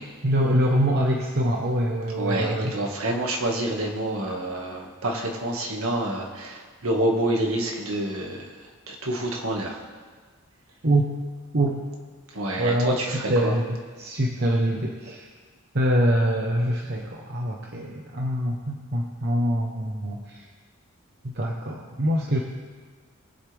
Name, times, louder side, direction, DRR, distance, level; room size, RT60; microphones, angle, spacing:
voice 1, 0.2-2.7 10.8-11.1 11.5-11.8 12.6-13.0 13.3-15.3 15.7-20.5 21.2-22.4, right 1 dB, 50° right, 0 dB, 1.1 m, -24 dB
voice 2, 2.2-9.8 12.3-13.6, right 1 dB, 80° right, 0 dB, 2.0 m, -28 dB
23.5 x 8.0 x 3.5 m, 1.5 s
head